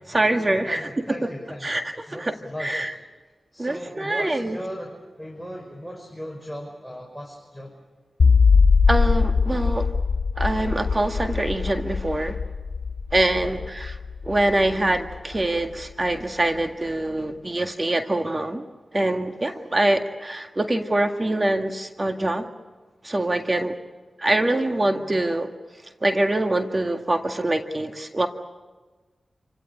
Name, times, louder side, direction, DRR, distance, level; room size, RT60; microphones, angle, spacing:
voice 1, 0.1-0.9 1.6-1.8 2.1-2.9 3.6-4.6 8.9-9.9 10.4-12.4 13.1-14.0 14.2-18.6 18.9-22.5 23.0-23.8 24.2-25.5 26.0-28.3, right 1 dB, 35° right, 5 dB, 1.8 m, -24 dB
voice 2, 0.7-1.7 2.1-2.9 3.5-7.7 13.4-13.6 19.5-19.6, equal, 5° right, 2 dB, 5.7 m, -37 dB
sound 1, 8.2-15.4, left 5 dB, 75° left, 1.3 m, -21 dB
28.0 x 17.0 x 9.8 m, 1.3 s
cardioid pair, 45°, 0 cm